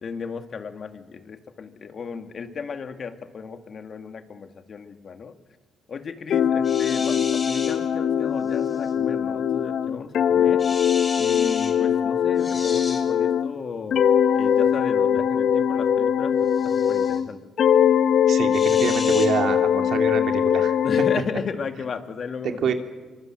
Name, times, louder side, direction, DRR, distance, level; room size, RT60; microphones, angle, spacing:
voice 1, 0.0-5.3 5.9-10.7 11.2-14.1 14.3-16.3 16.6-17.4 20.8-22.7, left 5 dB, 50° left, 7 dB, 2.1 m, -34 dB
sound 1, 6.3-13.5 13.9-17.3 17.6-21.2, left 8 dB, 65° left, 0.8 m, -21 dB
sound 2, 6.6-7.8 8.5-8.9 10.6-11.7 12.4-13.0 16.5-17.2 18.5-19.3, left 3 dB, 30° left, 7.1 m, -35 dB
voice 2, 18.3-20.8 22.6-22.7, right 7 dB, 65° right, 6 dB, 2.5 m, -26 dB
24.0 x 24.0 x 7.8 m, 1.3 s
cardioid pair, 90°, 0 cm